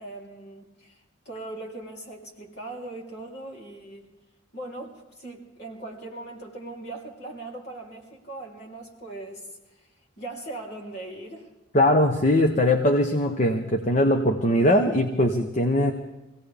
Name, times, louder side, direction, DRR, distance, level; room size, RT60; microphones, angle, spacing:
voice 1, 0.0-4.1 4.5-9.9 10.2-11.5, right 2 dB, 50° left, -1 dB, 3.2 m, -40 dB
voice 2, 11.7-15.9, left 1 dB, 35° left, 5 dB, 0.9 m, -21 dB
24.0 x 17.0 x 3.5 m, 1.1 s
head